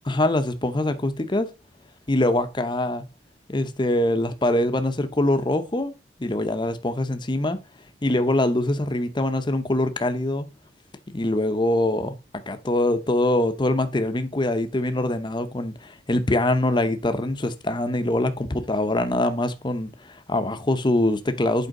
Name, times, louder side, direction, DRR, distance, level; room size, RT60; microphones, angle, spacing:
voice 1, 0.0-1.5 2.1-3.1 3.5-5.9 6.2-7.6 8.0-10.5 11.1-12.1 12.5-21.7, left 1 dB, 25° left, 0.8 m, -23 dB
8.0 x 5.0 x 3.7 m
head